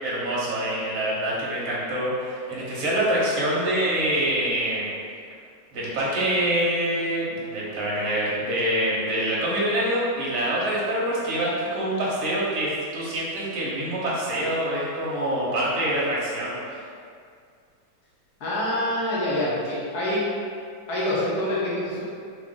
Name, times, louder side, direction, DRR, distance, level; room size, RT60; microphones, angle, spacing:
voice 1, 0.0-4.9 5.7-16.8, right 1 dB, 60° right, -6 dB, 1.2 m, -25 dB
voice 2, 18.4-20.2 20.9-22.0, left 1 dB, 65° left, -8 dB, 1.1 m, -26 dB
3.2 x 2.5 x 3.5 m, 2.2 s
omnidirectional pair, 2.1 m